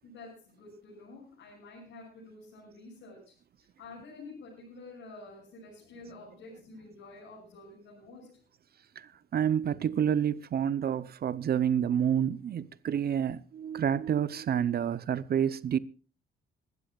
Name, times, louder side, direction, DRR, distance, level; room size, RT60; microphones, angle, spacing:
voice 1, 0.0-8.4, left 2 dB, 75° left, 6.7 m, -49 dB
voice 2, 9.0-15.8, right 9 dB, 50° right, 0.7 m, -29 dB
25.0 x 13.0 x 2.4 m
cardioid pair, 90°, 20 cm